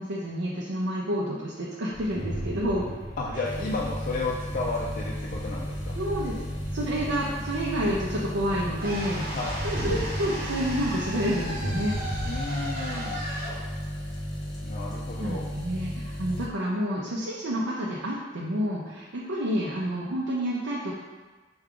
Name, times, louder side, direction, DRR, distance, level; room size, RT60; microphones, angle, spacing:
voice 1, 0.0-2.9 3.3-3.7 6.0-6.3 6.7-11.9 15.2-20.9, equal, 80° right, -5 dB, 0.6 m, -29 dB
sound 1, 1.9-12.4, equal, 20° left, 0.8 m, -37 dB
voice 2, 3.2-6.0 9.3-9.7 12.3-13.2 14.6-15.5, left 3 dB, 45° left, -3 dB, 0.4 m, -32 dB
sound 2, 3.4-16.5, equal, 75° left, 0.7 m, -35 dB
sound 3, 8.8-14.9, equal, 55° right, 1.1 m, -37 dB
4.7 x 2.3 x 3.6 m, 1.3 s
head